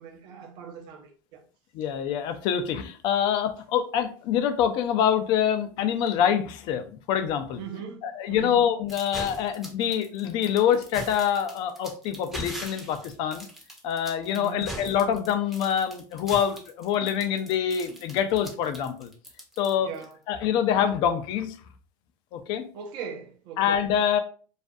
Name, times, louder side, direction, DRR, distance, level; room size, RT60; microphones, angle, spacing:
voice 1, 0.0-1.4 7.6-8.7 14.3-14.8 19.8-20.2 22.7-23.8, right 6 dB, 55° right, 0.5 m, -40 dB
voice 2, 1.7-7.6 8.0-13.5 13.8-19.1 19.6-19.9 20.3-21.6 22.3-22.6 23.6-24.2, left 9 dB, 55° left, 0.4 m, -25 dB
sound 1, 8.9-20.1, right 1 dB, 5° right, 0.6 m, -40 dB
2.4 x 2.2 x 2.5 m
supercardioid pair, 140°, 10 cm